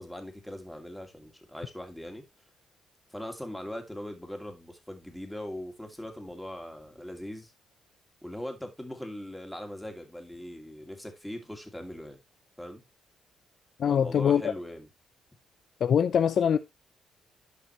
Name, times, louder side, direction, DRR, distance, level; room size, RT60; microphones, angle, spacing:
voice 1, 0.0-2.2 3.1-7.5 8.2-12.2 12.6-12.8 13.8-14.9, left 1 dB, 5° left, 2.6 m, -40 dB
voice 2, 13.8-14.5 15.8-16.6, left 8 dB, 60° left, 0.5 m, -23 dB
11.5 x 5.5 x 3.1 m
cardioid pair, 90°, 0 cm